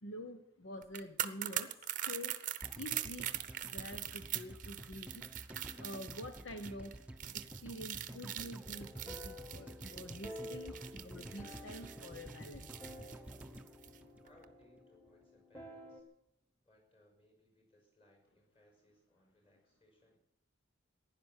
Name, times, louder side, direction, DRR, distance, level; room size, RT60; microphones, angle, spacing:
voice 1, 0.0-2.3 2.7-3.4 3.6-5.2 5.7-7.0 7.3-12.7, left 1 dB, 65° left, 7 dB, 0.9 m, -47 dB
sound 1, 0.8-14.0 14.3-14.4, right 12 dB, 40° right, 0.7 m, -43 dB
sound 2, 2.6-14.8 15.1-15.2, right 1 dB, 5° right, 0.7 m, -51 dB
sound 3, 8.6-16.0, left 1 dB, 10° left, 1.8 m, -52 dB
voice 2, 14.2-16.1 16.6-20.2, left 1 dB, 25° left, 2 dB, 5.6 m, -68 dB
15.5 x 11.0 x 7.3 m, 0.79 s
head